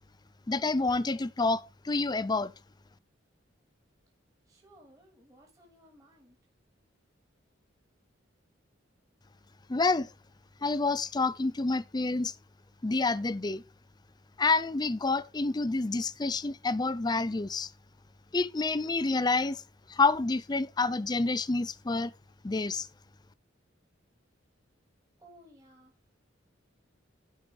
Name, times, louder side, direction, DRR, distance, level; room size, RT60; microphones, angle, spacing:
voice 1, 0.5-2.5 9.7-10.1 10.6-12.3 12.8-13.6 14.4-17.7 18.3-19.6 19.9-22.1 22.4-22.9, left 3 dB, 20° left, 0.5 m, -28 dB
voice 2, 4.5-6.4 25.2-25.9, right 1 dB, 20° right, 2.8 m, -58 dB
11.5 x 5.5 x 5.1 m
head